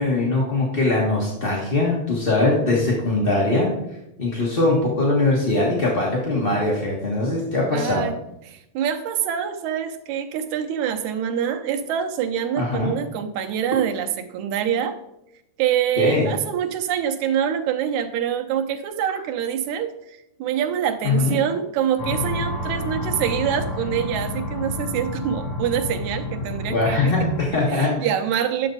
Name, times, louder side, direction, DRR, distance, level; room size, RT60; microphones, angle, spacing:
voice 1, 0.0-3.7 4.2-8.1 12.6-12.9 16.0-16.3 21.0-21.4 26.7-27.9, left 2 dB, 30° left, -4 dB, 1.0 m, -21 dB
voice 2, 7.7-8.1 8.5-15.0 15.6-27.1 27.7-28.7, right 9 dB, 85° right, 6 dB, 2.2 m, -25 dB
sound 1, 22.0-27.5, left 1 dB, 65° left, 3.5 m, -29 dB
11.0 x 7.0 x 4.0 m, 0.86 s
omnidirectional pair, 3.3 m